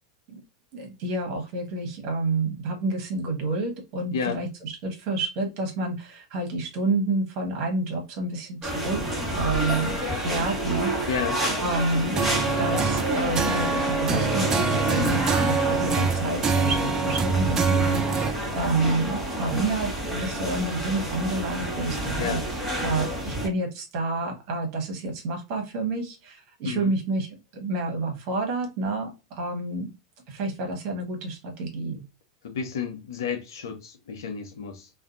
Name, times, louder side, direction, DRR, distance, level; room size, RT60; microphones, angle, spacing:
voice 1, 0.7-11.1 11.6-27.3 27.5-29.9 30.3-32.0, right 2 dB, 50° right, 1.1 m, -29 dB
sound 1, 8.6-23.5, right 1 dB, 5° right, 1.1 m, -29 dB
voice 2, 11.1-11.4 22.2-22.5 26.6-26.9 32.4-34.9, left 6 dB, 75° left, 0.7 m, -31 dB
sound 2, 12.2-18.3, right 5 dB, 25° right, 0.4 m, -25 dB
2.5 x 2.2 x 2.5 m
hypercardioid pair, 95°, 2 cm